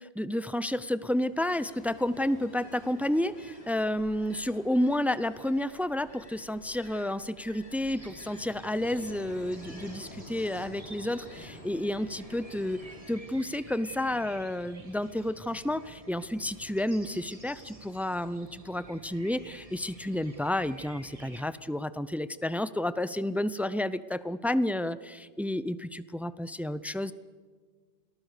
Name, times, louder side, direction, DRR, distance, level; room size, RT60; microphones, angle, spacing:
voice 1, 0.0-12.8 13.1-27.1, left 1 dB, ahead, 15 dB, 0.3 m, -31 dB
Ocean, 1.2-13.3, left 1 dB, 75° left, 3.2 m, -50 dB
sound 1, 7.9-21.5, right 2 dB, 30° right, 1.9 m, -50 dB
29.0 x 19.5 x 6.6 m, 1.5 s
omnidirectional pair, 1.1 m